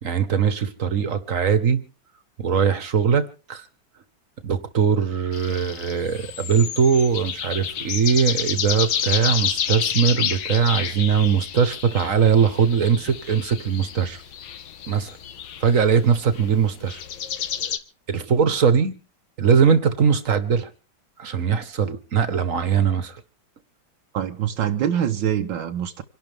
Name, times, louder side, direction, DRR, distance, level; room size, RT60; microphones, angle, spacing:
voice 1, 0.0-1.8 2.4-3.7 4.4-14.2 14.9-15.2 15.6-17.0 18.1-18.9 19.4-20.7 21.2-23.2, right 6 dB, 45° right, 1.6 m, -21 dB
sound 1, 5.3-17.8, left 9 dB, 65° left, 1.6 m, -30 dB
voice 2, 24.1-26.0, right 9 dB, 80° right, 1.7 m, -24 dB
27.0 x 12.0 x 3.6 m
omnidirectional pair, 2.1 m